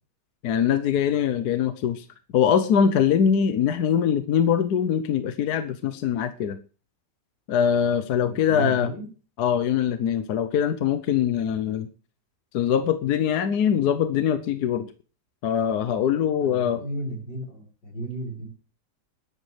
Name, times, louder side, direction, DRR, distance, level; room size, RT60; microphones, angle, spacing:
voice 1, 0.4-2.0 2.3-6.6 7.5-8.9 9.4-11.9 12.5-14.9 15.4-16.8, left 8 dB, 70° left, 9 dB, 1.3 m, -23 dB
voice 2, 8.2-9.1 16.4-18.5, right 2 dB, 90° left, 0 dB, 5.0 m, -34 dB
20.5 x 10.5 x 3.3 m, 0.36 s
omnidirectional pair, 1.9 m